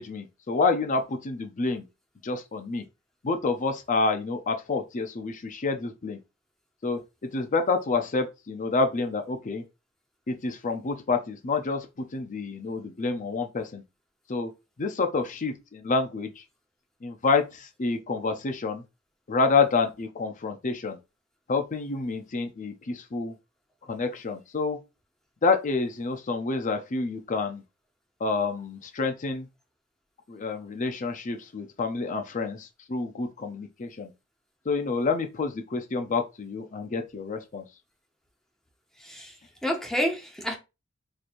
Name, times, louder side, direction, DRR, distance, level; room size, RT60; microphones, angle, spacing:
voice 1, 0.0-1.8 2.2-2.8 3.2-6.2 6.8-7.0 7.3-9.6 10.3-11.9 12.1-13.8 14.3-14.5 14.8-16.4 17.0-18.8 19.3-21.0 21.5-23.3 23.9-24.8 25.4-27.6 28.2-29.5 30.3-34.1 34.7-37.6, left 4 dB, 40° left, 0.5 m, -28 dB
voice 2, 39.0-39.3 39.6-40.6, equal, ahead, 1.0 m, -29 dB
4.2 x 3.1 x 2.5 m
head